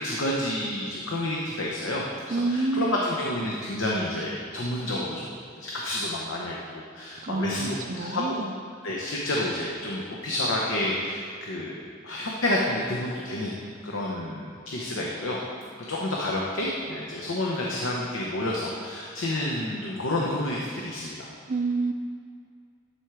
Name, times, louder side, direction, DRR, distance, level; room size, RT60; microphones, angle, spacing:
voice 1, 0.0-8.4 8.8-11.8 12.0-13.5 13.8-15.4 15.9-21.2, left 1 dB, 80° left, -3 dB, 0.9 m, -29 dB
voice 2, 2.3-3.0 7.2-8.5 21.5-21.9, right 3 dB, 40° right, 5 dB, 0.4 m, -28 dB
12.0 x 4.5 x 4.7 m, 2.2 s
head